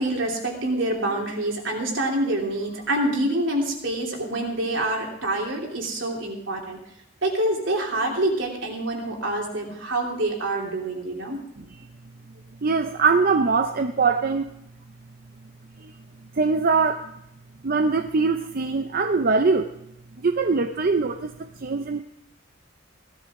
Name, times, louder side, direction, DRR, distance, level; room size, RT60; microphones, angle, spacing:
voice 1, 0.0-6.8 7.2-11.4, right 1 dB, 70° right, -1 dB, 3.2 m, -26 dB
voice 2, 12.6-14.5 15.8-15.9 16.3-17.1 17.6-19.7 20.2-22.0, right 4 dB, 50° right, 7 dB, 0.6 m, -22 dB
17.0 x 12.5 x 3.7 m, 0.76 s
head